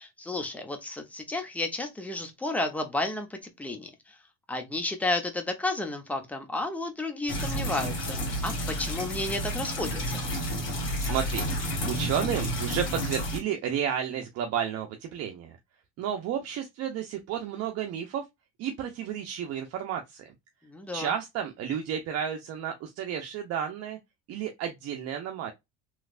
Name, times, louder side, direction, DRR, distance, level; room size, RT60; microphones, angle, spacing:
voice 1, 0.0-3.9 4.5-10.2 20.6-21.1, left 2 dB, 5° left, 0.8 m, -32 dB
sound 1, 7.3-13.4, equal, 40° left, 1.9 m, -31 dB
voice 2, 10.7-11.5 11.9-15.6 16.0-18.3 18.6-20.3 20.9-24.0 24.3-25.5, right 9 dB, 55° right, 0.7 m, -32 dB
3.2 x 3.1 x 2.4 m
cardioid pair, 120°, 29 cm